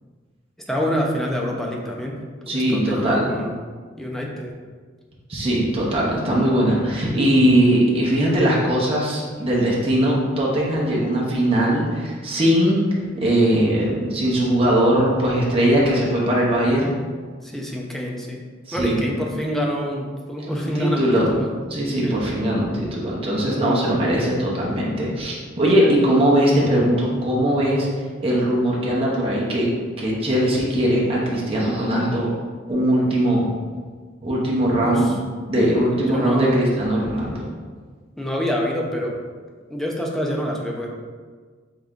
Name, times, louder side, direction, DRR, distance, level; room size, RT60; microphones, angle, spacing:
voice 1, 0.7-2.2 2.5-3.5 4.0-4.5 17.4-18.4 18.7-21.5 22.0-22.2 25.8-25.9 34.8-35.2 36.0-36.7 38.2-39.2 39.7-40.9, equal, ahead, -2 dB, 0.5 m, -26 dB
voice 2, 2.5-3.3 5.3-12.8 13.2-16.9 18.7-19.1 20.4-21.4 21.7-27.9 28.2-29.7 30.0-32.3 32.7-33.5 34.2-35.1 35.4-37.5, right 1 dB, 30° right, -5 dB, 0.8 m, -20 dB
3.7 x 3.4 x 3.6 m, 1.5 s
head